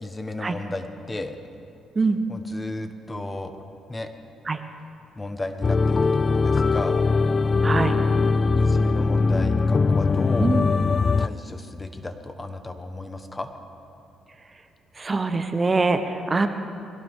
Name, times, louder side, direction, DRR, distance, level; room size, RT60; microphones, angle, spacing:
voice 1, 0.0-1.4 2.3-3.5 3.9-4.1 5.1-7.0 8.5-10.5 11.2-13.5 16.4-16.5, left 2 dB, 20° left, 7 dB, 1.3 m, -34 dB
sound 1, 5.6-11.3, left 4 dB, 35° left, 0.3 m, -21 dB
voice 2, 7.6-8.0 10.4-10.7 15.0-16.5, right 3 dB, 30° right, 8 dB, 0.9 m, -23 dB
22.5 x 17.0 x 3.7 m, 2.7 s
cardioid pair, 90°, 0 cm